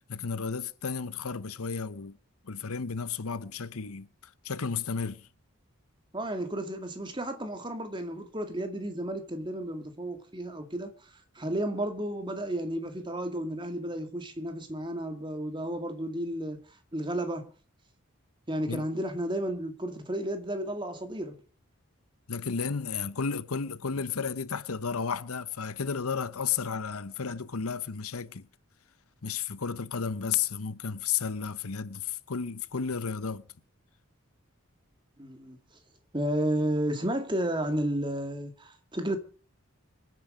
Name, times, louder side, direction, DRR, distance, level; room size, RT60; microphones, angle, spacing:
voice 1, 0.1-2.2 2.4-5.3 18.7-18.8 22.3-28.5 29.2-33.4, left 6 dB, 85° left, 0.9 m, -33 dB
voice 2, 6.1-16.6 16.9-17.5 18.5-21.3 35.2-35.6 36.1-39.2, right 1 dB, 20° right, 2.0 m, -32 dB
25.5 x 9.5 x 5.1 m
head